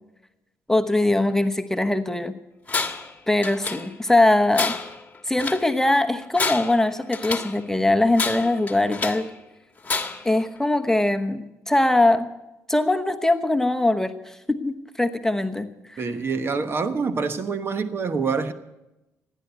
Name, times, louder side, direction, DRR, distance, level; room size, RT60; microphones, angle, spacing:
voice 1, 0.7-2.4 3.3-4.7 5.3-9.3 10.2-12.3 12.7-16.0, left 2 dB, 10° left, 1.0 m, -22 dB
Tools, 2.7-3.1 3.4-4.1 4.5-5.7 6.2-7.6 8.1-9.3 9.8-10.4, left 4 dB, 25° left, 1.5 m, -29 dB
voice 2, 16.0-18.5, right 5 dB, 45° right, 1.1 m, -26 dB
15.5 x 10.0 x 8.1 m
cardioid pair, 75°, 6 cm